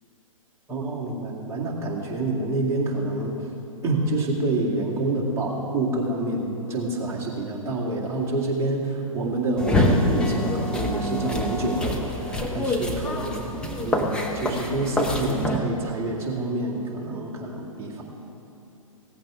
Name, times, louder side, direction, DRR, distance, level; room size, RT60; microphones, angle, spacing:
voice 1, 0.7-3.4 3.8-18.0, right 2 dB, 15° right, -4 dB, 2.1 m, -27 dB
sound 1, 9.6-15.6, left 1 dB, 5° left, 0.9 m, -26 dB
17.5 x 14.0 x 3.6 m, 2.8 s
figure-of-eight pair, 120°, 18 cm